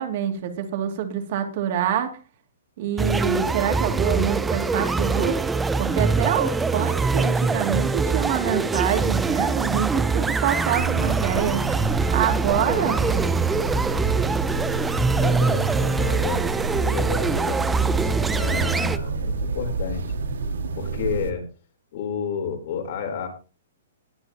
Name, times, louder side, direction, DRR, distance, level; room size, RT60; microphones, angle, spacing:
voice 1, 0.0-2.2 2.8-5.4 5.8-11.6 12.1-13.0, right 9 dB, 50° right, 5 dB, 2.6 m, -26 dB
sound 1, 3.0-19.0, right 4 dB, 10° right, 0.6 m, -23 dB
sound 2, 10.7-21.3, right 4 dB, 90° right, 2.1 m, -30 dB
voice 2, 12.6-13.3 15.0-17.7 18.3-20.0 20.7-21.4 21.9-23.3, left 6 dB, 55° left, 4 dB, 3.9 m, -31 dB
19.5 x 8.3 x 3.0 m, 0.34 s
hypercardioid pair, 150°, 0 cm